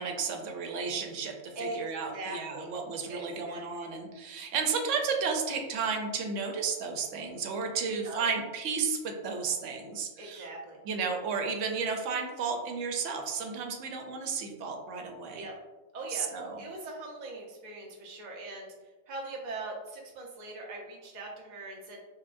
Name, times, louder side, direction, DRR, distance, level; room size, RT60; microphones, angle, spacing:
voice 1, 0.0-10.5 10.8-15.5 16.1-16.6, right 5 dB, 90° right, 3 dB, 0.9 m, -33 dB
voice 2, 2.1-2.7 3.1-3.6 7.9-8.3 10.2-10.8 15.3-15.6 15.9-16.3 16.6-18.7 19.1-22.0, right 2 dB, 45° right, -1 dB, 0.7 m, -41 dB
5.4 x 2.1 x 2.5 m, 1.1 s
omnidirectional pair, 1.2 m